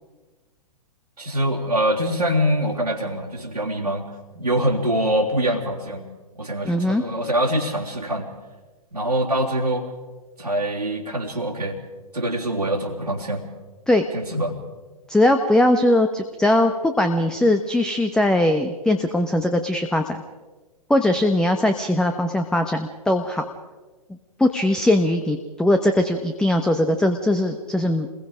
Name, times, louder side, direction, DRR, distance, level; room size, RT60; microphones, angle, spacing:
voice 1, 1.2-4.1 4.4-6.1 6.4-8.3 8.9-9.8 10.4-11.8 12.1-13.4 14.1-14.5, right 1 dB, 85° right, -4 dB, 3.4 m, -24 dB
voice 2, 6.6-7.0 13.9-14.0 15.1-20.2 20.9-23.4 24.4-28.1, left 1 dB, 5° left, 7 dB, 1.0 m, -20 dB
29.0 x 21.5 x 5.0 m, 1.3 s
figure-of-eight pair, 115°, 20 cm